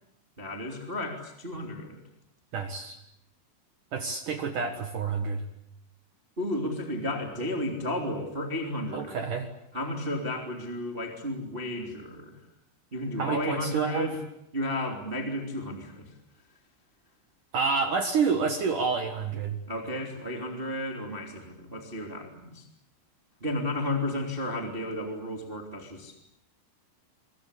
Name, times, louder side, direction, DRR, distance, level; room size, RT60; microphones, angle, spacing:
voice 1, 0.4-2.0 6.4-9.2 9.7-12.4 12.9-14.2 14.5-16.1 19.7-22.7 23.4-26.2, left 1 dB, 15° right, 2 dB, 2.3 m, -33 dB
voice 2, 2.5-3.0 3.9-5.4 8.9-9.5 13.2-14.1 17.5-19.6, right 5 dB, 65° right, 6 dB, 2.1 m, -28 dB
26.0 x 23.5 x 8.4 m, 0.78 s
omnidirectional pair, 5.9 m